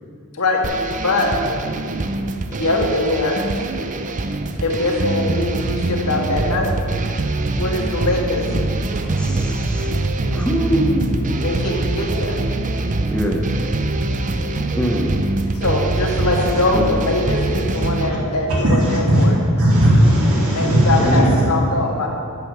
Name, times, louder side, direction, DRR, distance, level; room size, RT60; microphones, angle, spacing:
sound 1, 0.6-18.1, right 2 dB, 35° right, 0.5 m, -23 dB
voice 1, 0.9-1.3 2.5-3.5 4.6-6.7 7.5-8.4 11.4-12.4 15.5-19.3 20.5-22.1, left 2 dB, 80° left, 0 dB, 1.6 m, -22 dB
voice 2, 9.0-9.9 10.3-11.3 13.1-13.5 14.7-15.1 16.7-16.9 21.0-21.3, equal, 5° left, -1 dB, 0.8 m, -23 dB
voice 3, 18.6-19.2 19.6-21.3, right 1 dB, 70° right, -5 dB, 2.7 m, -16 dB
8.9 x 5.6 x 7.1 m, 2.4 s
head